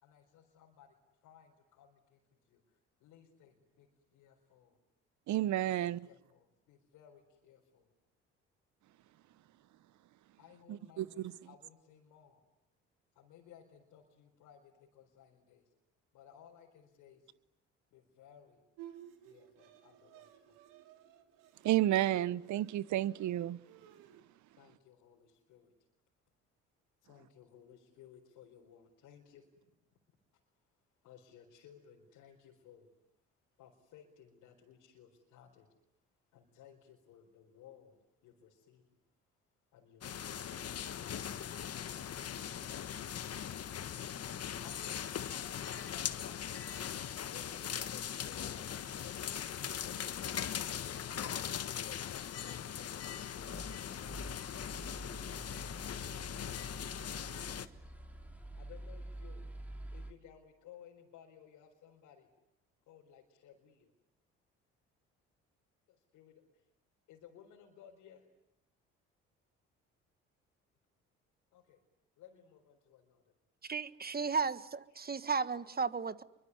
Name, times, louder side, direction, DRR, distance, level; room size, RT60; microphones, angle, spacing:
voice 1, 0.0-1.0 1.2-4.8 5.7-7.9 10.4-12.4 13.1-15.7 16.1-17.3 17.9-18.6 19.2-20.6 24.5-25.7 27.0-29.5 31.0-32.9 33.6-35.7 36.3-38.0 38.2-39.0 39.7-40.7 44.0-44.3 44.6-46.9 47.2-50.2 50.9-54.1 58.6-59.5 59.9-62.3 62.9-63.9 65.9-66.7 67.1-68.3 71.5-71.8 72.2-73.3 74.2-74.3 74.9-75.1, left 9 dB, 75° left, 4.5 m, -59 dB
voice 2, 5.3-6.0 10.7-11.3 21.6-23.6, right 13 dB, 65° right, 1.1 m, -31 dB
Bowed string instrument, 18.8-24.2, right 11 dB, 80° right, 2.9 m, -56 dB
sound 1, 40.0-57.7, left 9 dB, 50° left, 1.5 m, -40 dB
sound 2, 53.3-60.1, right 1 dB, 5° right, 4.9 m, -47 dB
voice 3, 73.6-76.2, right 5 dB, 30° right, 1.6 m, -34 dB
26.0 x 24.0 x 9.7 m
hypercardioid pair, 60°, 32 cm